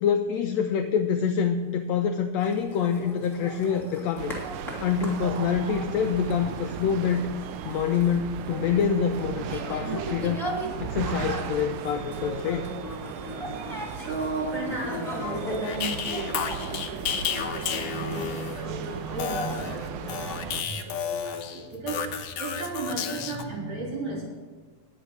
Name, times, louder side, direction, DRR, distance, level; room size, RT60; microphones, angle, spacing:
voice 1, 0.0-4.3 4.8-7.3 7.6-10.5 10.8-12.7, left 7 dB, 90° left, 6 dB, 1.5 m, -26 dB
sound 1, 2.4-21.0, equal, ahead, 2.0 m, -38 dB
sound 2, 4.2-20.6, right 9 dB, 85° right, 2.1 m, -37 dB
voice 2, 13.9-24.2, right 3 dB, 65° right, -5 dB, 4.9 m, -35 dB
sound 3, 15.6-18.7 19.2-23.4, left 7 dB, 65° left, 1.9 m, -32 dB
10.0 x 8.3 x 6.4 m, 1.4 s
omnidirectional pair, 3.6 m